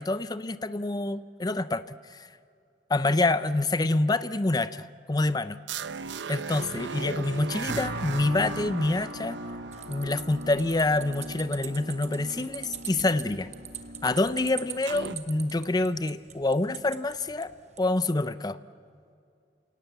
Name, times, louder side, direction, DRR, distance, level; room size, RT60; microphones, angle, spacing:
voice 1, 0.0-2.3 2.9-5.6 6.3-9.4 9.9-13.5 14.0-18.6, left 2 dB, 20° left, 14 dB, 0.6 m, -27 dB
sound 1, 5.7-10.1 14.9-15.2, right 6 dB, 85° right, 0.7 m, -37 dB
sound 2, 7.7-14.5, right 1 dB, 55° right, 1.6 m, -39 dB
sound 3, 9.7-17.9, right 9 dB, 40° right, 1.2 m, -43 dB
28.0 x 18.5 x 8.1 m, 2.4 s
head